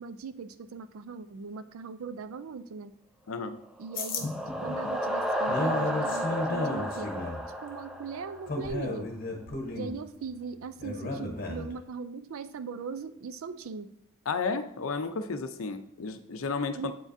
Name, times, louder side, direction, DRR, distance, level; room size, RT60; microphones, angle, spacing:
voice 1, 0.0-2.9 3.8-4.3 4.6-7.3 7.6-9.1 9.7-13.9 16.7-16.9, right 5 dB, 75° right, 12 dB, 0.4 m, -39 dB
voice 2, 3.3-3.6 14.3-16.9, left 4 dB, 75° left, 9 dB, 0.5 m, -32 dB
sound 1, 3.8-8.7, equal, 5° right, 0.4 m, -32 dB
sound 2, 4.0-11.8, left 2 dB, 40° left, 0.9 m, -34 dB
8.0 x 4.9 x 2.6 m, 0.73 s
head